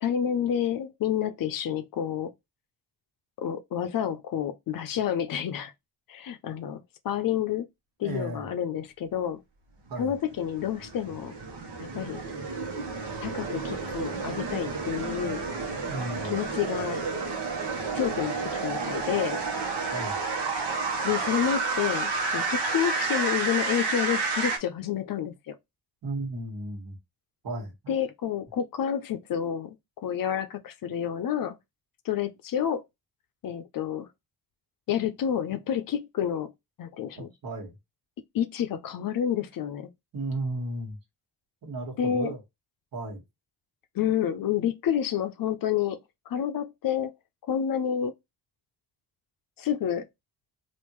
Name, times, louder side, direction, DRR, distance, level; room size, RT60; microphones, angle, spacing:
voice 1, 0.0-2.3 3.4-5.7 6.1-7.7 8.0-9.4 10.0-11.4 11.8-12.2 13.2-15.4 16.2-17.0 17.9-19.4 21.0-25.6 27.9-29.8 30.0-31.6 32.0-32.8 33.4-34.1 34.9-36.5 36.8-37.3 38.3-39.9 42.0-42.3 43.9-46.0 46.3-47.1 47.5-48.1 49.6-50.1, left 9 dB, 55° left, 0.5 m, -29 dB
voice 2, 8.0-8.5 9.9-10.2 15.9-16.3 19.9-20.2 26.0-27.0 27.4-27.9 37.1-37.7 40.1-41.0 41.6-42.4 42.9-43.2, right 2 dB, 55° right, 1.6 m, -34 dB
sound 1, 10.0-24.6, right 4 dB, 70° right, 1.0 m, -30 dB
3.4 x 2.5 x 3.0 m
cardioid pair, 90°, 42 cm